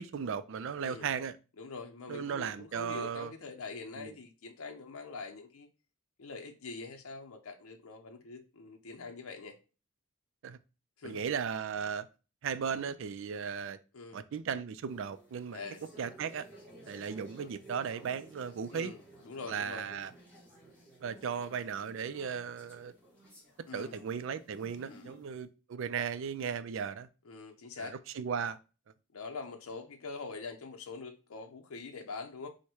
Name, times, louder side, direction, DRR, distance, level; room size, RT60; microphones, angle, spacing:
voice 1, 0.0-1.3 2.1-3.3 4.0-4.1 10.4-10.6 11.0-12.1 12.4-13.8 14.1-15.6 16.0-16.5 16.9-18.9 19.5-20.1 21.0-22.9 23.7-27.1 27.8-28.6, right 7 dB, 60° right, 0.3 m, -36 dB
voice 2, 0.8-1.1 1.6-5.7 6.2-9.6 11.0-11.2 13.9-14.2 15.5-15.8 18.7-19.9 23.7-24.0 24.8-25.1 27.2-28.0 29.1-32.5, left 4 dB, 85° left, 0.6 m, -44 dB
sound 1, 14.9-25.4, right 1 dB, 5° left, 1.9 m, -55 dB
4.7 x 2.1 x 4.4 m
head